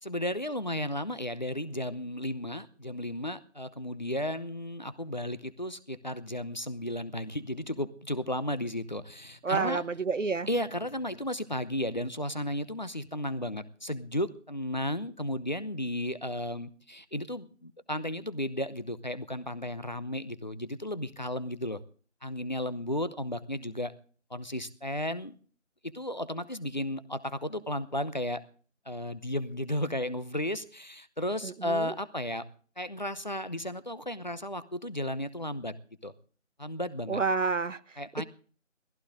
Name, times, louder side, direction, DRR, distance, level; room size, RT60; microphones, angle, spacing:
voice 1, 0.0-9.8 10.5-21.8 22.2-23.9 24.3-25.3 25.8-28.4 28.9-32.4 32.8-35.7 36.0-36.1 36.6-37.2 38.0-38.2, left 1 dB, 35° left, 0.8 m, -34 dB
voice 2, 9.4-10.5 31.4-31.9 37.1-38.0, right 4 dB, 75° right, 1.1 m, -29 dB
17.5 x 15.5 x 3.8 m
figure-of-eight pair, 170°, 38 cm